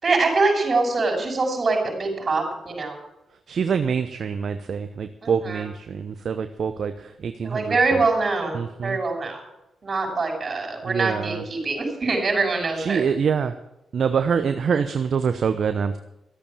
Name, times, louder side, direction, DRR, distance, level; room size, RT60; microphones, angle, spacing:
voice 1, 0.0-3.0 5.2-5.6 7.4-9.4 9.8-13.0, right 3 dB, 45° right, 2 dB, 6.0 m, -24 dB
voice 2, 3.5-8.0 8.5-9.0 10.8-11.4 12.7-13.5 13.9-16.0, right 6 dB, 65° right, 9 dB, 0.8 m, -25 dB
14.0 x 8.4 x 8.7 m, 0.89 s
supercardioid pair, 50°, 0 cm